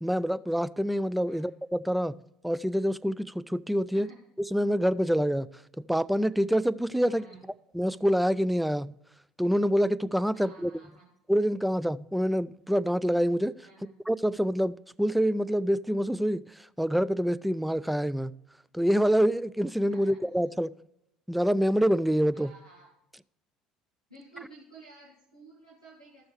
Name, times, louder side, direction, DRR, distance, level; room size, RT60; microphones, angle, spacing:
voice 1, 0.0-2.2 2.4-4.1 4.5-5.5 5.9-7.2 7.7-8.9 9.4-10.7 11.3-13.6 14.1-16.4 16.8-18.3 18.7-20.7 21.3-22.5, equal, ahead, 0.3 m, -26 dB
voice 2, 7.0-7.4 10.3-11.1 13.6-13.9 19.9-20.4 22.3-22.9 24.1-26.3, right 3 dB, 90° right, 1.6 m, -52 dB
14.5 x 6.2 x 3.2 m
figure-of-eight pair, 60°, 3 cm